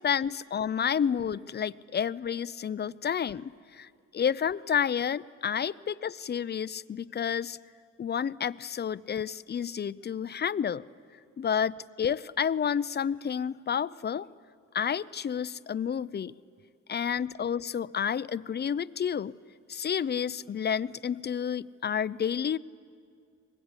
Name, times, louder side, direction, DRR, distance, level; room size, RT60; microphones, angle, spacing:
voice 1, 0.0-7.6 8.0-10.8 11.4-14.3 14.7-16.3 16.9-19.4 19.7-22.6, left 8 dB, 35° left, 17 dB, 0.6 m, -30 dB
25.0 x 21.0 x 9.8 m, 2.3 s
cardioid pair, 90°, 30 cm